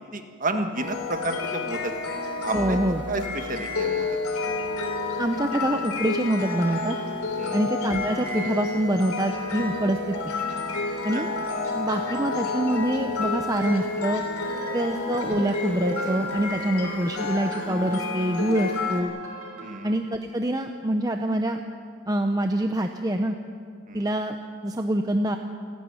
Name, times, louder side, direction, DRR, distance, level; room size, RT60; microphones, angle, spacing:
voice 1, 0.1-1.9 2.4-2.8 3.1-4.4 7.4-7.6 11.1-11.3 14.7-14.9 19.6-19.9 23.9-24.1, right 2 dB, 35° right, 6 dB, 1.6 m, -31 dB
sound 1, 0.7-19.0, left 3 dB, 85° left, 3.5 m, -30 dB
voice 2, 2.5-3.0 5.2-7.0 7.5-10.3 11.0-11.3 11.7-14.2 14.7-19.1 19.8-21.6 22.1-23.4 23.9-24.4 24.6-25.4, right 1 dB, 15° right, 5 dB, 0.7 m, -25 dB
sound 2, 14.4-19.9, right 1 dB, 70° right, 6.2 m, -38 dB
28.5 x 12.0 x 9.6 m, 2.2 s
head